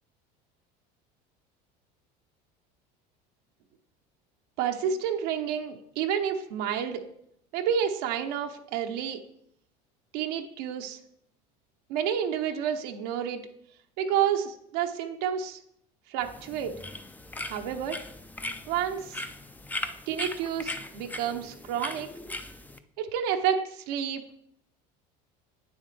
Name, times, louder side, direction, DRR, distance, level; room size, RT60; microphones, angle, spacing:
voice 1, 4.6-7.0 7.5-9.2 10.1-11.0 11.9-13.5 14.0-15.6 16.1-16.7 17.4-18.0 18.7-19.2 20.1-22.1 23.0-24.2, right 8 dB, 75° right, 4 dB, 0.9 m, -29 dB
sound 1, 16.2-22.8, left 2 dB, 10° left, 0.5 m, -39 dB
8.7 x 7.2 x 3.3 m, 0.72 s
supercardioid pair, 95°, 21 cm